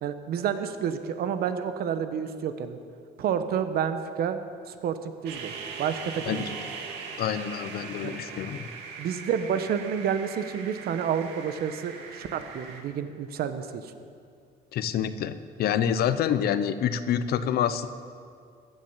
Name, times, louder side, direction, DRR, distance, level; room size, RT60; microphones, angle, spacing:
voice 1, 0.0-2.8 3.2-4.4 4.7-5.5 5.8-6.5 8.0-8.2 9.0-13.9, right 8 dB, 65° right, 9 dB, 1.1 m, -29 dB
sound 1, 5.3-12.8, right 5 dB, 90° right, 1.9 m, -40 dB
voice 2, 7.2-8.7 14.7-17.9, left 9 dB, 70° left, 12 dB, 0.8 m, -27 dB
15.0 x 10.0 x 7.3 m, 2.3 s
cardioid pair, 110°, 17 cm